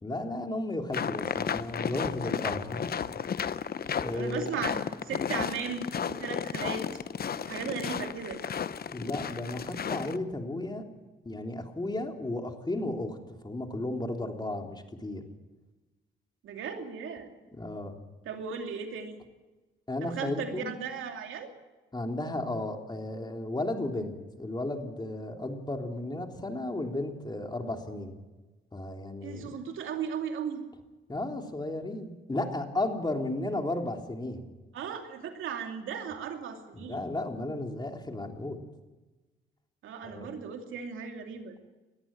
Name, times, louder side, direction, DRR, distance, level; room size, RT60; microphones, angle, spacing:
voice 1, 0.0-2.8 3.9-4.5 8.9-10.8 11.2-13.2 13.4-15.2 17.5-18.0 19.9-20.7 21.9-28.1 28.7-29.6 31.1-34.4 36.7-38.6 40.0-40.3, left 2 dB, 20° left, 3 dB, 3.3 m, -34 dB
sound 1, 0.9-10.2, left 7 dB, 50° left, 0.8 m, -33 dB
voice 2, 4.1-6.9 7.4-8.4 16.4-17.3 18.3-19.2 20.0-21.5 29.2-30.7 34.7-37.0 39.8-41.5, right 6 dB, 80° right, 4 dB, 2.7 m, -36 dB
20.5 x 14.0 x 8.9 m, 1.2 s
cardioid pair, 65°, 20 cm